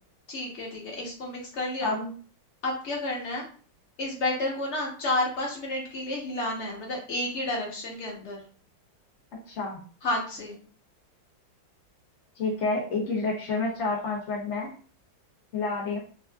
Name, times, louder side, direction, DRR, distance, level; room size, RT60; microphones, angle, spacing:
voice 1, 0.3-2.0 2.6-3.4 4.0-8.4 10.0-10.6, left 2 dB, 45° left, -2 dB, 1.0 m, -31 dB
voice 2, 9.5-9.8 12.4-14.7 15.5-16.0, left 3 dB, 70° left, -2 dB, 0.6 m, -29 dB
3.4 x 2.3 x 2.2 m, 0.40 s
omnidirectional pair, 2.0 m